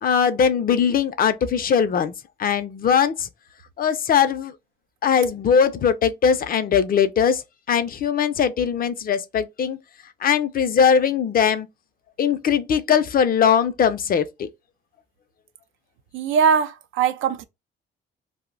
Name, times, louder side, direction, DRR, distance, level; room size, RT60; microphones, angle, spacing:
voice 1, 0.0-2.1 2.4-3.3 3.8-4.5 5.0-7.4 7.7-9.8 10.2-11.7 12.2-14.5, left 7 dB, 45° left, 0.5 m, -20 dB
voice 2, 16.1-17.4, right 6 dB, 85° right, 0.4 m, -21 dB
2.5 x 2.1 x 3.7 m
cardioid pair, 90°, 20 cm